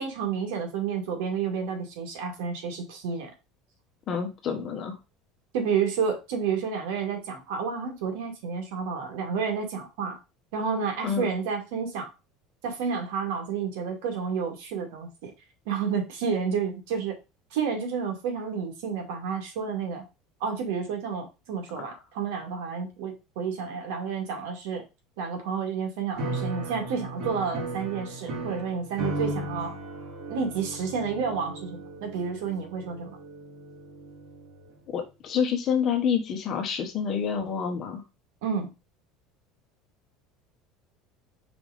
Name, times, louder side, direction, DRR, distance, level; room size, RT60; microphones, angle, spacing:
voice 1, 0.0-3.3 5.5-10.2 10.5-12.1 12.6-15.3 15.7-17.1 17.5-20.0 20.4-24.8 25.2-29.8 30.3-33.2 38.4-38.7, right 6 dB, 80° right, 3 dB, 2.2 m, -30 dB
voice 2, 4.1-4.9 11.0-11.3 21.8-21.9 34.9-38.0, left 7 dB, 35° left, 5 dB, 1.2 m, -28 dB
sound 1, 26.1-34.5, right 2 dB, 55° right, 2.5 m, -36 dB
5.2 x 3.7 x 4.9 m, 0.27 s
cardioid pair, 160°, 0 cm